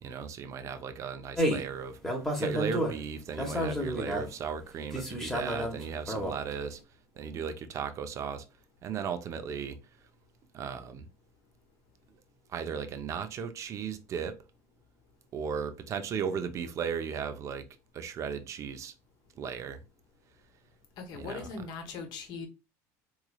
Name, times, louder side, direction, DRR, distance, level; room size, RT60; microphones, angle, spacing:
voice 1, 0.0-2.0 2.4-6.8 7.2-8.4 8.8-9.8 10.5-11.1 12.5-14.4 15.3-17.7 17.9-18.9 19.4-19.8 21.2-21.5, right 6 dB, 35° right, 0.6 m, -36 dB
sound 1, 1.4-1.7 2.0-3.0 3.4-4.3 4.9-6.4, equal, 5° left, 0.9 m, -31 dB
voice 2, 21.0-22.5, left 5 dB, 55° left, 1.0 m, -40 dB
3.7 x 3.1 x 2.3 m
supercardioid pair, 125°, 9 cm